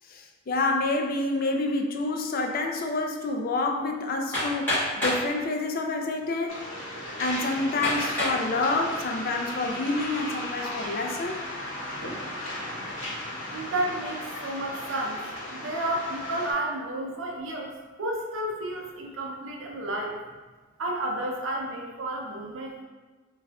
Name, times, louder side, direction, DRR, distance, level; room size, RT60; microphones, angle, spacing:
voice 1, 0.1-6.6 7.2-11.4, left 2 dB, 45° left, 3 dB, 0.3 m, -28 dB
Hammer, 4.3-5.3 6.2-6.3 6.9-7.0 7.8-8.4 9.0-9.4, left 1 dB, 10° left, 1.4 m, -27 dB
Waves surf, 6.5-16.5, left 1 dB, 70° left, 0.9 m, -36 dB
voice 2, 13.4-15.2 15.5-17.7 18.0-20.2 20.8-22.8, right 1 dB, 75° right, -1 dB, 0.6 m, -31 dB
3.3 x 2.4 x 3.4 m, 1.3 s
head